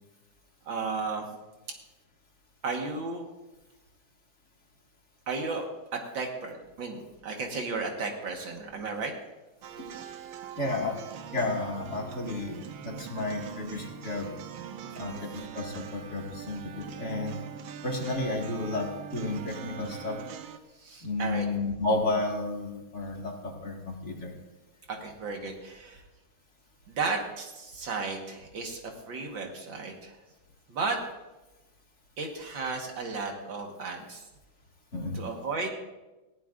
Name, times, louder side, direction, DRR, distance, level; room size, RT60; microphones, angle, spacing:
voice 1, 0.7-1.3 2.6-3.3 5.3-5.7 5.9-9.1 14.8-15.2 20.8-21.5 24.9-26.0 26.9-30.2 30.7-31.0 32.2-34.3 35.1-35.7, right 4 dB, 70° right, 2 dB, 2.2 m, -34 dB
sound 1, 9.6-20.6, right 8 dB, 85° right, 1.7 m, -42 dB
voice 2, 10.6-11.0 11.3-12.6 12.8-14.3 15.0-17.4 17.8-20.2 21.0-24.3 34.9-35.2, left 2 dB, 35° left, -1 dB, 2.2 m, -32 dB
20.0 x 15.5 x 2.5 m, 1.1 s
omnidirectional pair, 2.2 m